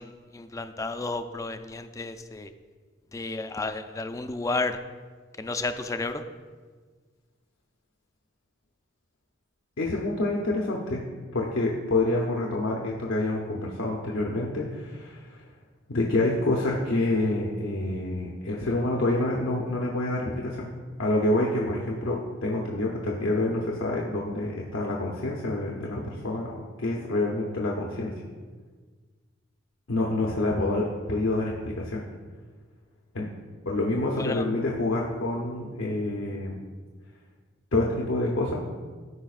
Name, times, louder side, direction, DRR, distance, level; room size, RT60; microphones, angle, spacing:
voice 1, 0.0-2.5 3.1-4.8 5.4-6.2 34.2-34.4, left 3 dB, 15° left, 9 dB, 0.3 m, -32 dB
voice 2, 9.8-11.0 11.3-15.4 15.9-20.7 21.0-28.1 29.9-32.0 33.1-33.3 33.7-36.6 37.7-38.6, left 2 dB, 90° left, -2 dB, 0.8 m, -27 dB
13.5 x 4.9 x 2.4 m, 1.5 s
head